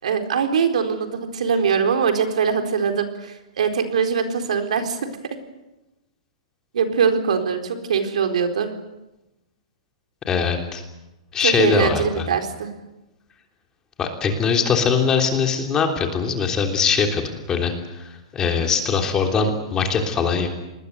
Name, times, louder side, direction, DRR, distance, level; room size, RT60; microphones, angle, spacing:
voice 1, 0.0-5.0 6.7-8.7 11.4-12.7, right 6 dB, 80° right, 6 dB, 4.2 m, -22 dB
voice 2, 10.3-10.8 11.3-12.3 14.0-20.5, left 5 dB, 15° left, 3 dB, 3.3 m, -22 dB
27.0 x 20.5 x 8.1 m, 0.97 s
hypercardioid pair, 160°, 4 cm